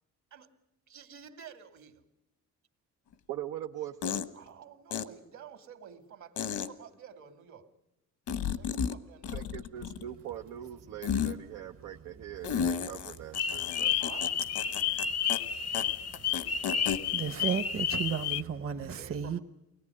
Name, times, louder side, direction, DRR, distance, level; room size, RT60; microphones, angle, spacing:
voice 1, 0.9-2.0 4.3-7.7 8.5-9.6 14.0-14.4 18.9-19.4, right 7 dB, 70° right, 7 dB, 2.5 m, -50 dB
sound 1, 3.1-3.2 4.0-4.3 4.9-5.0 6.4-6.7 8.3-9.0 9.2-10.1 11.0-11.3 12.4-15.0 15.3-15.4 15.7-15.8 16.1-17.0, left 7 dB, 75° left, 1.3 m, -32 dB
voice 2, 3.3-4.3 9.3-14.0, right 11 dB, 90° right, 2 dB, 0.9 m, -42 dB
sound 2, 13.3-18.4, left 8 dB, 55° left, 0.8 m, -31 dB
voice 3, 17.1-19.4, right 7 dB, 45° right, 6 dB, 1.1 m, -33 dB
24.0 x 18.5 x 9.8 m, 0.93 s
cardioid pair, 90°, 30 cm